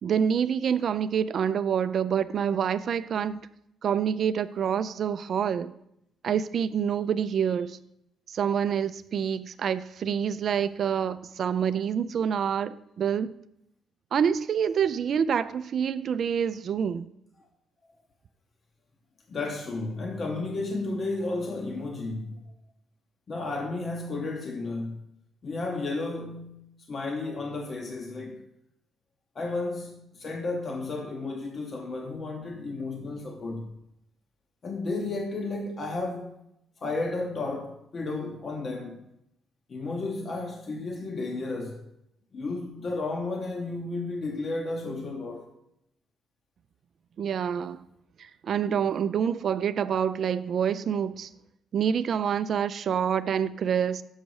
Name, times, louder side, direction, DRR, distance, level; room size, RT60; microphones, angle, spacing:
voice 1, 0.0-3.4 3.8-5.7 6.2-7.8 8.3-13.3 14.1-17.1 47.2-47.8 48.2-51.3 51.7-54.0, right 8 dB, 60° right, 0.3 m, -27 dB
voice 2, 19.3-22.4 23.3-25.0 25.4-28.4 29.3-33.7 34.6-36.4 36.8-39.0 39.7-41.8 42.3-45.5, left 3 dB, 45° left, 0.8 m, -33 dB
6.4 x 5.1 x 4.7 m
cardioid pair, 90°, 0 cm